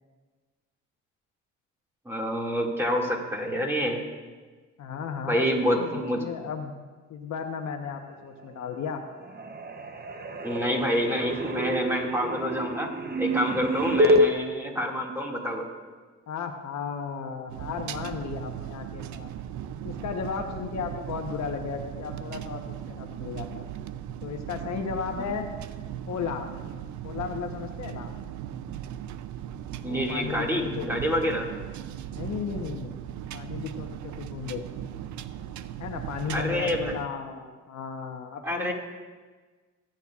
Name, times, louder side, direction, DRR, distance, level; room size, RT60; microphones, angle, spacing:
voice 1, 2.1-4.0 5.3-6.2 10.4-15.7 29.8-31.5 36.3-36.9 38.4-38.7, equal, 10° right, -1 dB, 2.2 m, -27 dB
voice 2, 4.8-6.7 7.1-9.0 16.3-19.3 19.8-23.7 24.2-25.5 26.1-26.5 27.0-28.1 29.8-31.3 32.1-33.0 33.3-34.6 35.8-38.7, left 6 dB, 65° left, 4 dB, 1.0 m, -35 dB
sound 1, 8.3-8.8 9.1-14.3, equal, 30° right, 0.8 m, -27 dB
sound 2, 17.5-37.1, right 10 dB, 70° right, 0.5 m, -38 dB
23.5 x 9.0 x 2.4 m, 1.4 s
cardioid pair, 90°, 30 cm